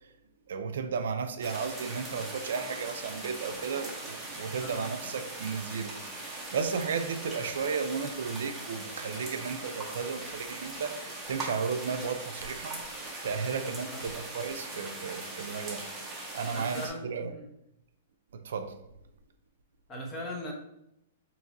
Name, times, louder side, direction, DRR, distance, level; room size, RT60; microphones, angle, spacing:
voice 1, 0.5-12.8 13.2-15.8 16.3-17.3 18.3-18.8, right 5 dB, 75° right, 8 dB, 0.4 m, -34 dB
sound 1, 1.4-16.9, right 2 dB, 10° right, 0.8 m, -40 dB
voice 2, 4.6-4.9 13.5-14.1 16.5-17.5 19.9-20.5, equal, 20° left, 0 dB, 0.7 m, -40 dB
3.9 x 2.9 x 2.5 m, 0.81 s
hypercardioid pair, 145°, 0 cm